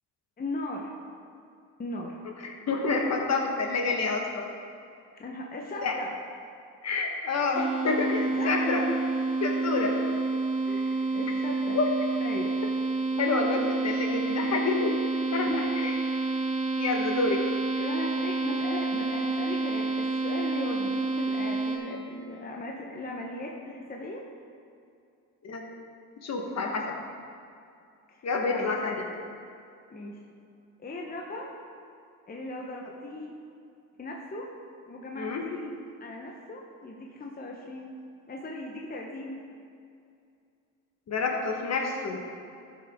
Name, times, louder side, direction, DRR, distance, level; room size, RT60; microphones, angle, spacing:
voice 1, 0.4-0.9 1.8-2.2 5.2-6.1 8.3-9.0 10.6-11.9 12.2-12.6 15.5-15.7 17.3-24.2 28.1-28.7 29.9-30.2 30.8-31.5 32.3-33.3 34.0-34.5 34.9-35.7 36.0-37.9 38.3-39.4, left 2 dB, 25° left, -1 dB, 0.9 m, -38 dB
voice 2, 2.7-4.5 5.8-5.9 6.8-8.8 9.4-9.9 11.7-11.9 13.2-14.9 15.3-15.5 15.8-15.9 16.8-17.4 25.4-25.6 26.2-26.9 28.2-29.0 35.2-35.4 41.1-42.2, left 3 dB, 45° left, 1 dB, 1.4 m, -28 dB
sound 1, 7.5-21.8, right 3 dB, 20° right, 1.5 m, -29 dB
12.5 x 6.1 x 3.6 m, 2.4 s
cardioid pair, 90°, 36 cm